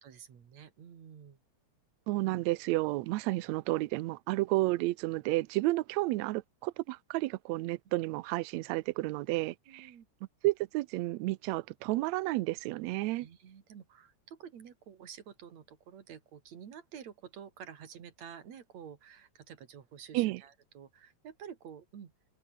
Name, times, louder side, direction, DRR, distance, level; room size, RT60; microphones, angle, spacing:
voice 1, 0.0-1.4 9.7-10.1 13.2-22.1, right 8 dB, 60° right, 3.6 m, -50 dB
voice 2, 2.1-9.9 10.4-13.3 20.1-20.4, right 19 dB, 75° right, 1.8 m, -31 dB
omnidirectional pair, 3.6 m